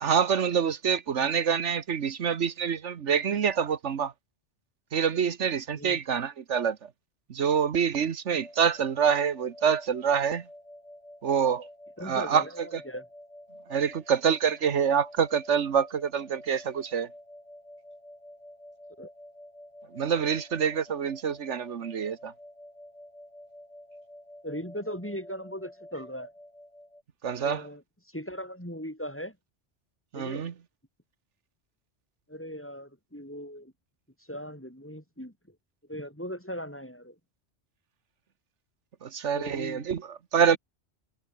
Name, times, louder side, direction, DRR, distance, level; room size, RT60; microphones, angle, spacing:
voice 1, 0.0-4.1 4.9-6.8 7.3-10.4 11.2-11.7 12.0-12.4 13.7-17.1 19.9-22.3 27.2-27.6 30.1-30.5 39.0-40.0 40.3-40.6, right 7 dB, 80° right, 1.4 m, -26 dB
sound 1, 8.4-27.0, left 1 dB, 30° left, 8.0 m, -49 dB
voice 2, 12.0-13.1 19.0-19.1 24.4-26.3 27.4-29.4 30.1-30.4 32.3-33.7 34.2-35.6 35.9-37.2 39.3-39.9, equal, 10° left, 5.1 m, -38 dB
omnidirectional pair, 1.2 m